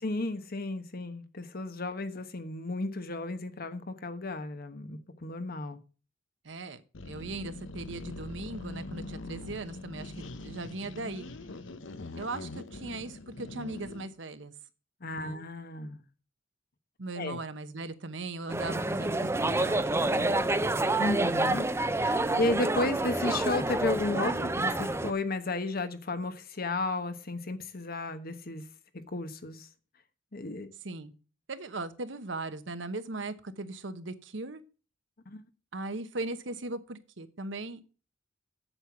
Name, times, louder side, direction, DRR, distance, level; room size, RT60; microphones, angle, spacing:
voice 1, 0.0-5.8 15.0-16.0 17.2-17.4 21.0-21.7 22.0-28.6 29.1-29.7 30.3-30.7 35.3-35.4, left 2 dB, 50° left, 1.1 m, -33 dB
voice 2, 6.4-11.2 12.2-14.5 15.1-15.4 17.0-20.5 22.3-22.5 30.8-31.1 31.5-34.6 35.7-37.8, right 2 dB, 70° right, 1.0 m, -39 dB
sound 1, 6.9-14.1, left 2 dB, 80° left, 0.8 m, -42 dB
sound 2, 18.5-25.1, right 2 dB, 15° right, 0.6 m, -28 dB
8.0 x 7.7 x 5.8 m
head